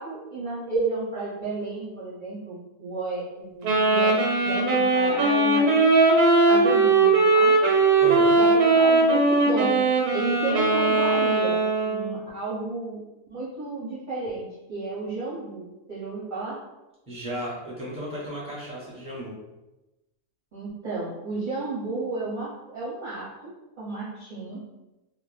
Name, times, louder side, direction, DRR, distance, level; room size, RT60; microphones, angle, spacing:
voice 1, 0.0-5.8 6.5-7.6 8.4-9.9 10.1-13.0 13.3-16.6 20.5-24.6, right 3 dB, 45° right, -9 dB, 0.7 m, -32 dB
Wind instrument woodwind instrument, 3.6-12.1, right 3 dB, 90° right, 1.2 m, -20 dB
voice 2, 8.0-8.4 17.1-19.3, equal, 5° right, -7 dB, 0.8 m, -34 dB
2.5 x 2.1 x 3.2 m, 1.0 s
omnidirectional pair, 1.5 m